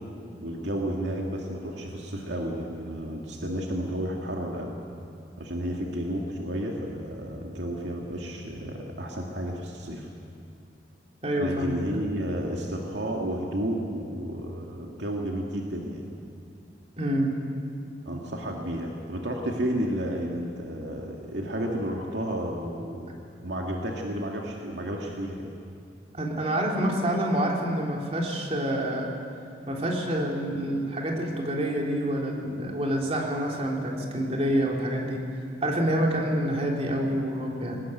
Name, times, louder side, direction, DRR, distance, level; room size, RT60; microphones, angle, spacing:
voice 1, 0.4-4.7 5.4-10.1 11.3-16.0 18.1-23.1 23.4-25.5, right 1 dB, 80° right, 0 dB, 2.2 m, -32 dB
voice 2, 11.2-11.7 17.0-17.4 26.1-29.1 29.7-35.3 35.6-37.8, right 1 dB, 35° right, -1 dB, 3.5 m, -27 dB
21.5 x 19.5 x 9.2 m, 2.5 s
head